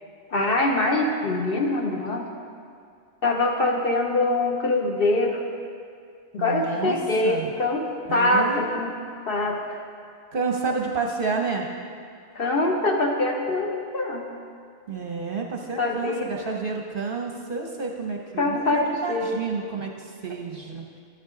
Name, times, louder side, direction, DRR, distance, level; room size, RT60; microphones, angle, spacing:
voice 1, 0.3-2.2 3.2-5.4 6.3-8.9 9.3-9.8 12.3-14.3 15.8-16.3 18.4-19.4, left 2 dB, 50° left, 1 dB, 0.8 m, -24 dB
voice 2, 6.4-7.0 7.2-7.5 8.1-8.8 10.3-11.7 14.9-21.0, right 4 dB, 50° right, 1 dB, 0.8 m, -30 dB
11.0 x 9.4 x 3.7 m, 2.3 s
omnidirectional pair, 1.4 m